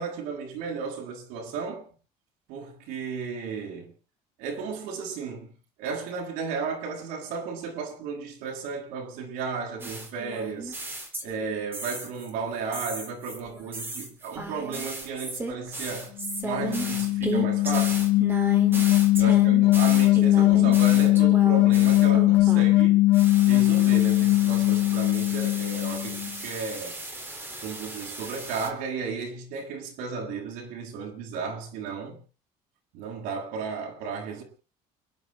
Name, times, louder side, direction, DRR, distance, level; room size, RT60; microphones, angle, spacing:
voice 1, 0.0-1.9 2.5-3.9 4.4-5.5 5.8-10.8 11.2-16.1 16.4-18.1 19.2-23.0 23.5-27.0 27.6-32.2 32.9-34.4, right 5 dB, 80° right, 7.5 m, -34 dB
sound 1, 9.8-12.3 12.7-22.8 23.1-28.7, right 2 dB, 15° right, 3.8 m, -35 dB
sound 2, 16.2-26.3, left 18 dB, 85° left, 1.4 m, -20 dB
29.5 x 11.0 x 3.8 m
cardioid pair, 170°, 15 cm